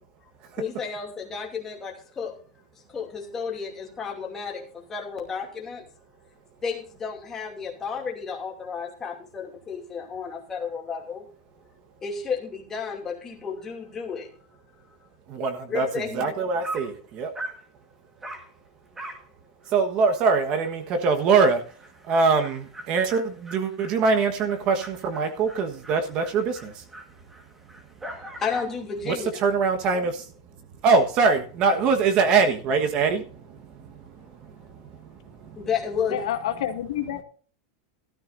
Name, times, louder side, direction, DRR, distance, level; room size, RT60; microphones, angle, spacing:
voice 1, 0.6-2.3 2.9-5.8 6.6-11.3 12.0-14.3 15.7-16.4 28.0-29.3 35.6-36.2, left 6 dB, 15° left, 2.6 m, -32 dB
voice 2, 15.4-15.9 16.1-16.9 17.2-17.3 19.7-21.6 22.1-22.6 22.9-23.2 23.5-26.4 29.1-29.2 29.4-30.1 30.8-33.2, right 4 dB, 30° right, 1.3 m, -22 dB
Dog, 16.6-17.0 17.3-17.6 18.2-18.5 18.9-19.3 19.6-19.7 20.1-20.2 20.6-20.7 21.0-28.8, right 1 dB, 10° right, 1.6 m, -42 dB
voice 3, 36.1-37.2, left 11 dB, 80° left, 1.9 m, -28 dB
15.0 x 13.0 x 2.6 m
supercardioid pair, 175°, 3 cm